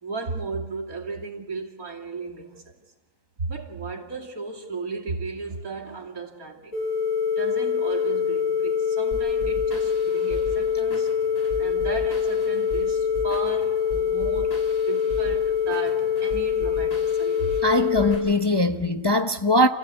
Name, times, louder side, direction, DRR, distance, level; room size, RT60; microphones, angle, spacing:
voice 1, 0.0-2.7 3.4-6.8 7.4-11.1 11.6-14.6 14.8-17.6, right 4 dB, 90° right, 3.0 m, -34 dB
sound 1, 6.7-18.1, left 7 dB, 80° left, 6.9 m, -24 dB
sound 2, 9.1-18.7, equal, 45° left, 5.3 m, -39 dB
voice 2, 17.6-19.7, left 1 dB, 25° left, 0.6 m, -21 dB
29.5 x 15.0 x 8.3 m
omnidirectional pair, 1.5 m